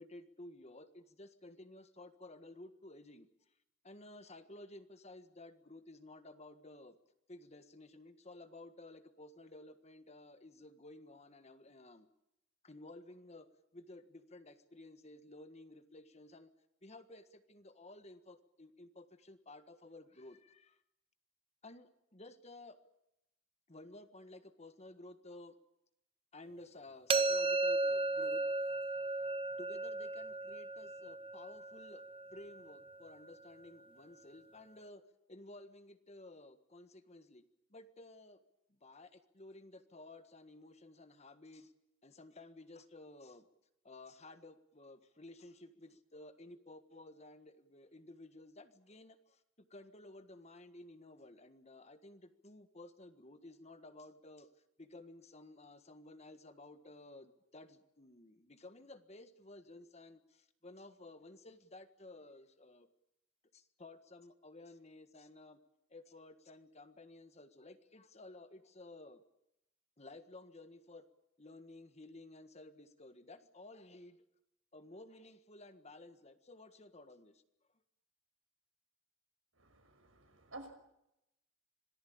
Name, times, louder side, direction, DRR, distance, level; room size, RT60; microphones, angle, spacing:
voice 1, 0.0-3.3 3.8-7.0 7.3-12.1 12.6-13.5 13.7-16.5 16.8-20.8 21.6-22.8 23.7-25.5 26.3-28.4 29.6-32.0 32.3-35.0 35.3-37.4 37.7-38.4 38.7-41.7 42.0-43.5 43.8-49.4 49.7-54.5 54.8-62.9 63.5-65.6 65.9-69.2 70.0-71.1 71.4-74.2 74.7-77.4, left 2 dB, 35° left, 10 dB, 1.6 m, -54 dB
sound 1, 27.1-32.9, right 3 dB, 25° right, 0.9 m, -35 dB
voice 2, 79.6-80.7, right 2 dB, 85° right, 5 dB, 5.8 m, -52 dB
26.0 x 18.5 x 8.7 m, 0.84 s
head